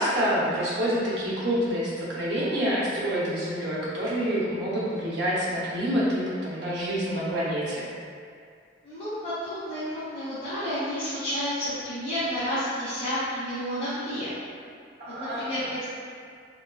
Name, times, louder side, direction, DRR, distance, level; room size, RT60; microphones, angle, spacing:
voice 1, 0.0-7.8 15.0-15.6, equal, 60° right, -8 dB, 0.8 m, -27 dB
voice 2, 8.8-14.3 15.1-15.8, equal, 25° left, -16 dB, 0.8 m, -31 dB
3.5 x 2.3 x 2.3 m, 2.2 s
head